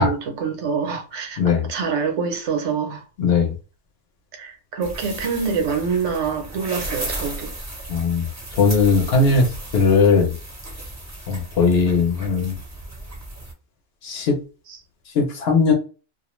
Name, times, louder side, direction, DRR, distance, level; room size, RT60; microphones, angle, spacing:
voice 1, 0.0-1.4 1.7-3.0 4.3-7.6 14.7-14.8, right 5 dB, 70° right, 0.9 m, -25 dB
voice 2, 3.2-3.5 7.9-8.3 8.6-10.3 11.3-12.6 14.0-14.4 15.1-15.7, left 4 dB, 60° left, 0.9 m, -18 dB
sound 1, 4.8-13.5, right 1 dB, 20° right, 0.5 m, -35 dB
2.4 x 2.1 x 3.0 m
omnidirectional pair, 1.3 m